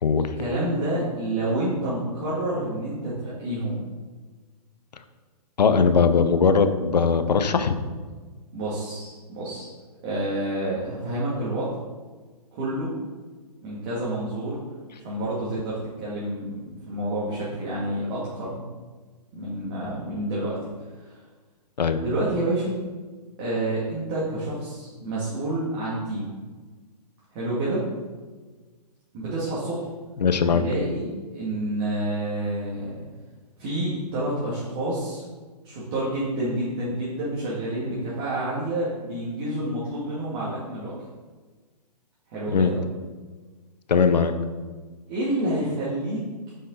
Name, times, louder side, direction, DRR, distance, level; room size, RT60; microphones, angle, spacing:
voice 1, 0.4-3.8 8.5-9.7 10.0-11.8 12.5-12.9 13.6-14.6 15.0-18.6 19.3-20.6 21.0-21.2 22.0-22.7 23.4-26.3 27.3-27.8 29.1-29.9 30.5-33.0 33.6-35.2 35.6-41.0 42.3-42.7 45.1-46.3, right 1 dB, 40° right, -8 dB, 2.4 m, -28 dB
voice 2, 5.6-7.7 21.8-22.0 30.2-30.7 42.5-42.7 43.9-44.3, left 5 dB, 85° left, 10 dB, 0.7 m, -20 dB
7.4 x 5.6 x 4.1 m, 1.4 s
hypercardioid pair, 140°, 21 cm